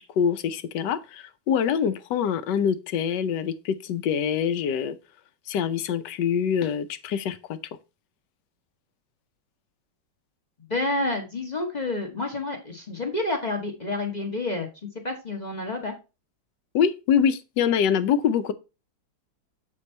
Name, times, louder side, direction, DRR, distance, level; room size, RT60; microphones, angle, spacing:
voice 1, 0.2-5.0 5.5-7.6 16.7-18.5, left 8 dB, 75° left, 1.2 m, -25 dB
voice 2, 10.7-14.7 15.0-15.9, left 2 dB, 30° left, 0.8 m, -29 dB
7.3 x 4.4 x 4.2 m
omnidirectional pair, 2.0 m